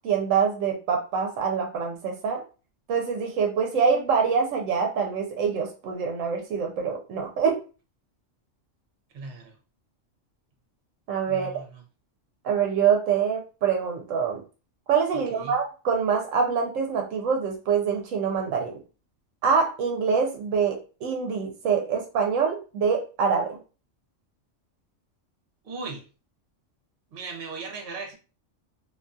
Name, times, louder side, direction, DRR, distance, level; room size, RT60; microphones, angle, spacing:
voice 1, 0.0-2.4 2.9-7.6 11.1-11.5 12.4-14.4 14.9-18.7 19.4-23.6, right 6 dB, 80° right, 2 dB, 0.9 m, -25 dB
voice 2, 9.1-9.5 11.3-11.7 15.1-15.6 25.6-26.0 27.1-28.1, right 4 dB, 50° right, 2 dB, 0.9 m, -37 dB
2.6 x 2.3 x 2.5 m, 0.34 s
omnidirectional pair, 1.3 m